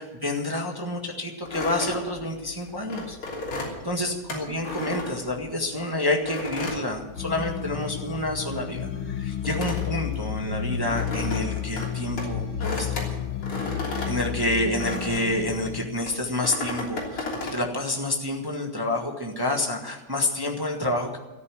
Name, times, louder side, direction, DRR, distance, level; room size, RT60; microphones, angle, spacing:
voice 1, 0.0-3.2 3.8-13.1 14.0-21.2, left 1 dB, 15° right, 1 dB, 0.8 m, -28 dB
sound 1, 1.5-5.8 6.3-7.7 8.0-15.4 16.0-17.6, left 2 dB, 45° left, 4.1 m, -34 dB
sound 2, 7.2-15.9, left 9 dB, 90° left, 3.0 m, -31 dB
14.0 x 9.6 x 9.9 m, 1.1 s
omnidirectional pair, 3.3 m